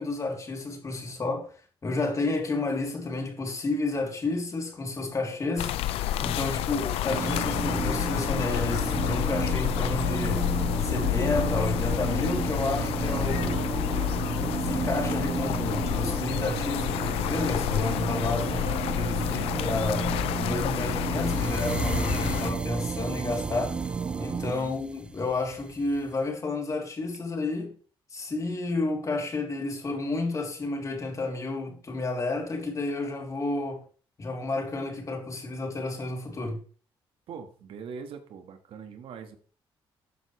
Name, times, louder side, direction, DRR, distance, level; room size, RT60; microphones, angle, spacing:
voice 1, 0.0-1.5 1.8-5.7 6.2-10.4 10.8-13.5 14.4-18.6 19.0-20.1 20.4-23.8 24.2-27.7 28.1-33.8 34.2-36.6, left 2 dB, 35° left, 3.3 m, -31 dB
sound 1, 5.6-22.5, left 13 dB, 90° left, 0.7 m, -29 dB
voice 2, 6.5-7.0 13.0-14.2 18.4-18.8 19.1-19.6 24.3-24.8 37.3-39.4, right 7 dB, 70° right, 1.7 m, -43 dB
sound 2, 7.1-24.5, right 5 dB, 35° right, 0.9 m, -32 dB
sound 3, 21.1-26.1, right 2 dB, 10° right, 0.5 m, -36 dB
13.0 x 8.0 x 3.3 m
cardioid pair, 95°, 10 cm